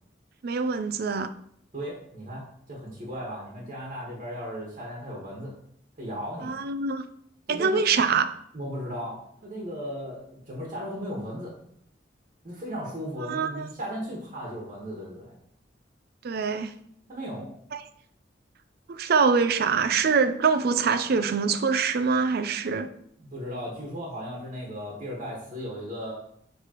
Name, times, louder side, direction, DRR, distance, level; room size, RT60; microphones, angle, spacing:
voice 1, 0.4-1.3 6.4-7.0 7.5-8.3 13.3-13.7 16.2-16.7 17.7-17.8 18.9-22.9, right 5 dB, 55° right, 10 dB, 0.4 m, -24 dB
voice 2, 1.7-5.5 6.0-6.5 7.5-7.8 8.5-11.5 12.4-15.3 17.1-17.5 23.2-26.1, equal, 40° right, -3 dB, 1.5 m, -36 dB
9.5 x 3.3 x 3.0 m, 0.67 s
head